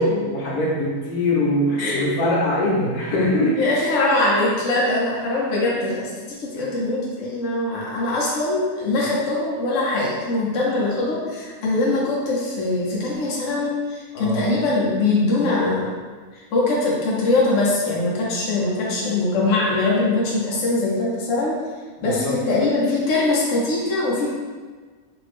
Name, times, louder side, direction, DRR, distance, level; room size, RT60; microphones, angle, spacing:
voice 1, 0.0-3.7 6.6-6.7 7.9-8.0 14.1-14.4 22.0-22.3, left 1 dB, 80° left, -5 dB, 1.3 m, -22 dB
voice 2, 3.6-6.1 6.4-16.0 16.3-21.5 22.0-24.3, left 2 dB, 60° left, -5 dB, 1.0 m, -22 dB
2.9 x 2.6 x 3.3 m, 1.5 s
omnidirectional pair, 1.6 m